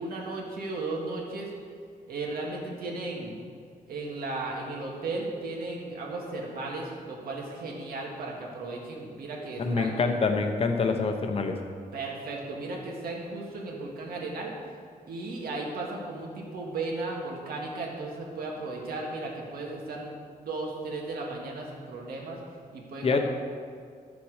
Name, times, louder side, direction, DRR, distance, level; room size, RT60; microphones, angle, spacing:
voice 1, 0.0-1.5 2.1-3.4 3.9-10.0 11.9-14.5 15.1-22.4 22.7-23.2, right 2 dB, 85° right, -1 dB, 2.0 m, -35 dB
voice 2, 9.6-11.5 23.0-23.2, left 4 dB, 40° left, 5 dB, 0.9 m, -26 dB
12.0 x 7.2 x 4.9 m, 2.1 s
wide cardioid pair, 165°, 15 cm